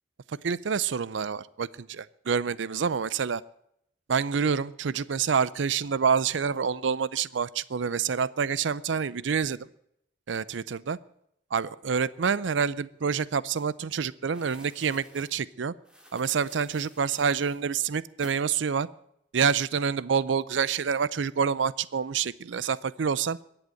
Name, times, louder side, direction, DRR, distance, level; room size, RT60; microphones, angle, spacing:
voice 1, 0.4-3.4 4.1-9.7 10.3-11.0 11.5-15.7 16.1-18.9 19.3-23.4, right 6 dB, 85° right, 20 dB, 0.5 m, -27 dB
sound 1, 13.5-13.6 14.3-15.3 15.8-17.6 18.2-18.4, equal, 5° right, 2.3 m, -51 dB
22.0 x 7.9 x 7.7 m, 0.76 s
head